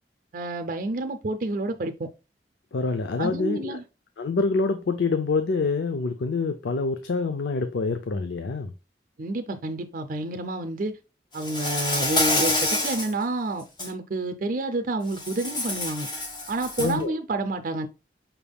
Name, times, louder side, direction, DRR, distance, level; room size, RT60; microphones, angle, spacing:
voice 1, 0.3-2.1 3.2-3.8 9.2-10.9 11.3-16.1 16.5-17.9, right 2 dB, 50° right, 0.5 m, -29 dB
voice 2, 2.7-3.8 4.2-8.7 16.8-17.1, left 4 dB, 85° left, 0.5 m, -26 dB
Insect, 11.4-13.1 13.6-13.9 15.1-17.0, left 2 dB, 25° left, 1.4 m, -27 dB
5.8 x 3.5 x 2.2 m
head